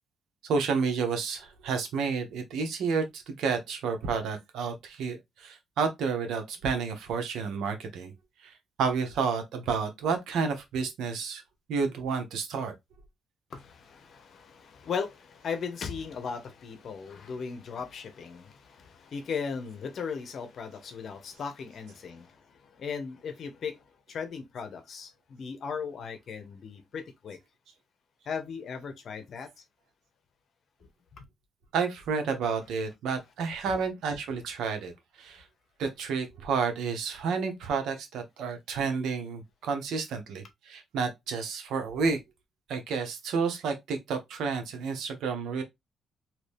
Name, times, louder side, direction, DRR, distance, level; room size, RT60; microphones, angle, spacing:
voice 1, 0.4-8.1 8.4-8.5 8.8-11.4 11.7-12.7 31.7-34.9 35.2-35.4 35.8-42.2 42.7-45.6, right 5 dB, 80° right, 0.9 m, -30 dB
voice 2, 13.5-27.4 28.3-29.5 30.8-31.2, left 6 dB, 60° left, 0.8 m, -37 dB
2.9 x 2.7 x 3.4 m
cardioid pair, 90°, 0 cm